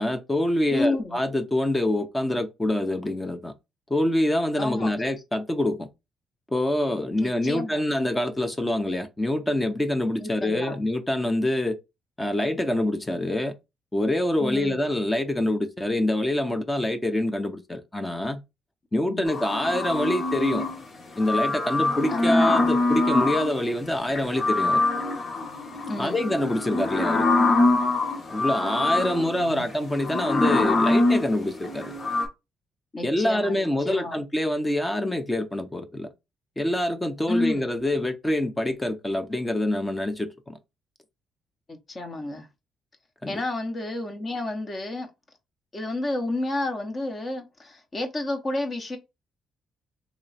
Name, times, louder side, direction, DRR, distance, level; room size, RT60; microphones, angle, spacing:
voice 1, 0.0-3.5 3.9-5.9 6.5-11.8 12.2-13.5 13.9-18.4 18.9-20.6 21.2-24.8 26.0-27.3 28.3-31.9 33.0-36.1 36.6-40.6 43.2-43.4, left 1 dB, 15° left, 0.6 m, -26 dB
voice 2, 0.7-1.2 4.6-4.9 7.2-7.8 10.2-10.8 14.4-14.8 19.1-19.2 22.1-22.3 25.9-26.2 29.0-29.6 32.9-34.2 37.3-37.6 41.7-42.5 43.3-45.1 45.7-49.0, left 2 dB, 35° left, 0.9 m, -30 dB
sound 1, 19.3-20.8 21.2-23.6 24.1-32.3, left 2 dB, 70° left, 1.6 m, -24 dB
3.0 x 2.9 x 4.1 m
cardioid pair, 90°, 0 cm